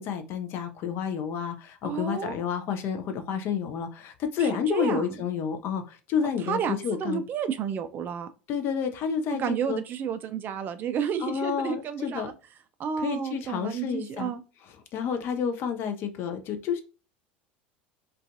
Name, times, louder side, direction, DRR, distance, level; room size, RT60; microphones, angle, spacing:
voice 1, 0.0-7.2 8.5-9.8 11.2-12.3 13.0-14.3 14.9-16.8, left 7 dB, 45° left, 7 dB, 0.5 m, -30 dB
voice 2, 1.8-2.4 4.4-5.2 6.4-8.3 9.4-12.3 12.8-14.4, right 7 dB, 35° right, 10 dB, 0.3 m, -31 dB
2.5 x 2.3 x 2.4 m, 0.34 s
figure-of-eight pair, 75°, 6 cm